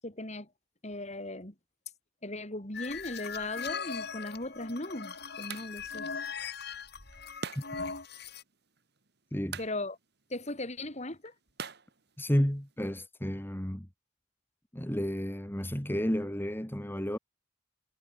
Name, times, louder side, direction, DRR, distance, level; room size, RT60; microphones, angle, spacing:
voice 1, 0.0-0.5 0.8-1.5 2.2-6.1 9.6-10.0 10.3-11.3, left 2 dB, 35° left, 5.8 m, -38 dB
sound 1, 2.7-8.4, left 6 dB, 60° left, 7.0 m, -39 dB
sound 2, 4.3-12.8, right 5 dB, 60° right, 4.1 m, -48 dB
voice 2, 12.2-13.9 14.7-17.2, equal, 10° left, 1.9 m, -31 dB
head